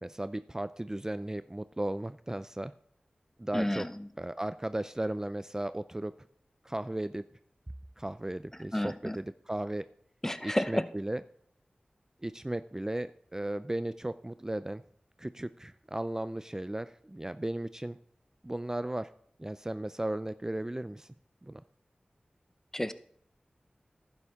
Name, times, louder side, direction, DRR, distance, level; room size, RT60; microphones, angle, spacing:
voice 1, 0.0-2.7 3.4-3.9 4.2-6.1 6.6-7.2 8.0-9.9 10.4-11.2 12.2-14.8 15.2-18.0 18.4-19.1 19.4-21.1 21.4-21.6, right 1 dB, 20° right, 12 dB, 0.4 m, -35 dB
voice 2, 3.5-3.9 8.7-9.2 10.2-10.8 22.7-22.9, left 1 dB, 15° left, 12 dB, 0.7 m, -30 dB
11.0 x 9.7 x 3.6 m, 0.65 s
cardioid pair, 45°, 3 cm